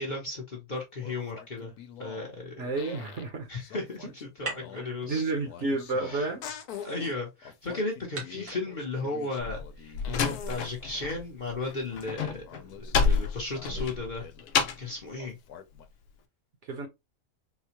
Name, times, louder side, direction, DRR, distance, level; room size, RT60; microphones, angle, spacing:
voice 1, 0.0-1.7 2.0-2.7 3.5-5.2 6.0-6.3 6.8-12.4 13.0-14.3 14.8-15.4, left 3 dB, 35° left, 0.9 m, -35 dB
sound 1, 0.8-2.4 2.8-3.3 3.6-6.9 7.4-11.2 11.6-14.6 15.2-15.9, left 8 dB, 90° left, 1.2 m, -46 dB
voice 2, 2.6-3.5 3.8-4.1 4.7-6.7 16.6-16.9, right 3 dB, 55° right, 1.1 m, -32 dB
sound 2, 3.4-12.4, right 3 dB, 90° right, 2.0 m, -47 dB
Slam, 9.4-11.2 11.5-15.0, left 5 dB, 65° left, 0.9 m, -29 dB
4.2 x 2.3 x 2.9 m
omnidirectional pair, 1.6 m